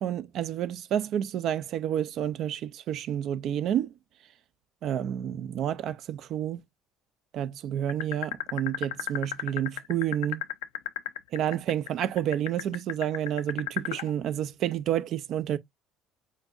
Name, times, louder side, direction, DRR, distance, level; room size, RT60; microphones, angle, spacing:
voice 1, 0.0-3.9 4.8-6.6 7.3-10.4 11.3-15.6, right 10 dB, 50° right, 0.4 m, -29 dB
sound 1, 7.9-14.1, left 13 dB, 70° left, 0.5 m, -32 dB
7.2 x 2.6 x 2.4 m
figure-of-eight pair, 55°, 0 cm